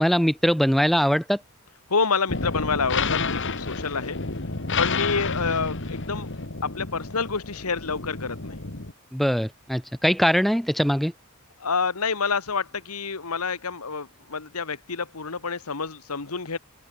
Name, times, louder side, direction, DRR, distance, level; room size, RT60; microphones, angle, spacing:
voice 1, 0.0-1.4 9.1-11.1, equal, ahead, 1.4 m, -21 dB
voice 2, 1.9-4.2 4.8-6.3 6.6-8.6 11.6-16.6, left 5 dB, 85° left, 1.5 m, -28 dB
sound 1, 2.3-8.9, left 4 dB, 60° left, 2.2 m, -30 dB
head